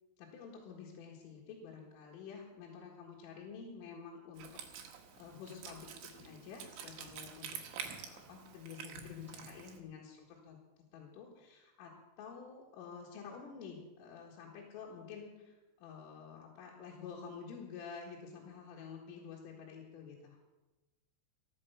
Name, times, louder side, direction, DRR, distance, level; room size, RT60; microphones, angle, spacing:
voice 1, 0.2-10.6 10.9-20.4, left 6 dB, 75° left, -3 dB, 4.4 m, -50 dB
Wind instrument woodwind instrument, 4.4-9.8, right 8 dB, 70° right, 3.3 m, -48 dB
15.0 x 11.5 x 6.9 m, 1.1 s
omnidirectional pair, 6.0 m